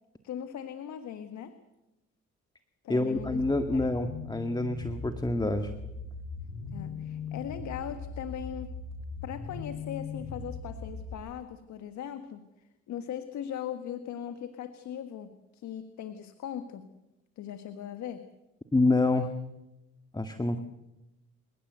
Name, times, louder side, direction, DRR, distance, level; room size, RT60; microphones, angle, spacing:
voice 1, 0.2-1.6 2.8-3.4 3.7-4.0 6.7-8.7 9.2-12.5 12.9-16.9 17.4-18.3, left 9 dB, 70° left, 9 dB, 1.6 m, -39 dB
voice 2, 2.9-5.7 18.7-19.3 20.1-20.6, left 2 dB, 15° left, 7 dB, 1.9 m, -27 dB
sound 1, 3.1-11.1, left 4 dB, 90° left, 7.3 m, -40 dB
28.5 x 17.0 x 8.0 m, 0.96 s
supercardioid pair, 65°, 29 cm